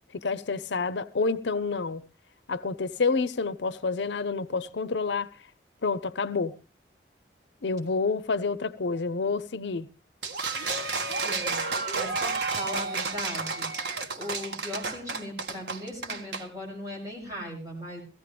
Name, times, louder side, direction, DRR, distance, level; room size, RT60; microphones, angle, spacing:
voice 1, 0.1-2.0 2.5-5.3 5.8-6.5 7.6-9.9, left 4 dB, 85° left, 0.7 m, -28 dB
sound 1, 10.2-16.4, right 4 dB, 80° right, 1.7 m, -31 dB
voice 2, 11.2-11.6 12.0-18.0, left 1 dB, 20° right, 6.7 m, -38 dB
17.0 x 15.5 x 3.4 m
head